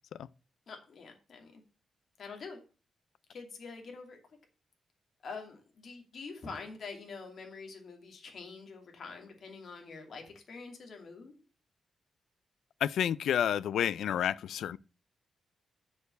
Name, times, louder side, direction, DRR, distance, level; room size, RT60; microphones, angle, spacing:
voice 1, 0.7-1.6 2.2-2.6 3.3-4.2 5.2-11.3, left 4 dB, 50° left, 2.6 m, -45 dB
voice 2, 12.8-14.8, left 9 dB, 85° left, 0.4 m, -30 dB
6.9 x 6.8 x 6.8 m
wide cardioid pair, 165°, 0 cm